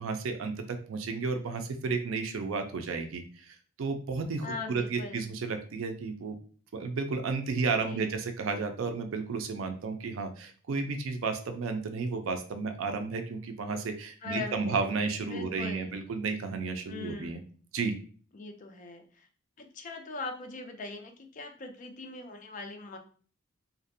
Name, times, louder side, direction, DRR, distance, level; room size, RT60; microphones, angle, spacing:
voice 1, 0.0-6.4 6.7-17.4 17.7-17.9, right 4 dB, 75° right, 6 dB, 0.4 m, -32 dB
voice 2, 4.4-5.3 7.9-8.2 14.2-15.0 15.3-16.0 16.9-17.4 18.3-19.3 19.6-23.0, left 3 dB, 40° left, 5 dB, 0.4 m, -41 dB
2.5 x 2.0 x 2.6 m, 0.41 s
head